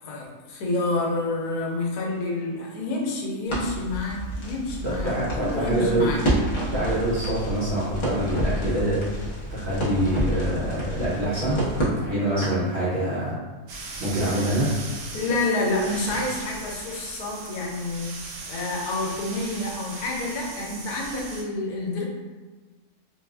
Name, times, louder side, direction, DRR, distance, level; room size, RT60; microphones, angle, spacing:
voice 1, 0.0-6.2 15.1-18.2 18.5-22.0, left 2 dB, 80° left, -2 dB, 1.1 m, -28 dB
Crackle, 3.5-12.7, right 1 dB, 35° left, 0.4 m, -29 dB
voice 2, 4.8-6.2 6.7-9.0 9.5-11.6 12.0-13.4 14.0-14.7, right 1 dB, 50° right, -9 dB, 1.1 m, -25 dB
sound 1, 13.7-21.4, right 3 dB, 75° right, 1.0 m, -38 dB
3.3 x 2.3 x 2.3 m, 1.3 s
omnidirectional pair, 1.6 m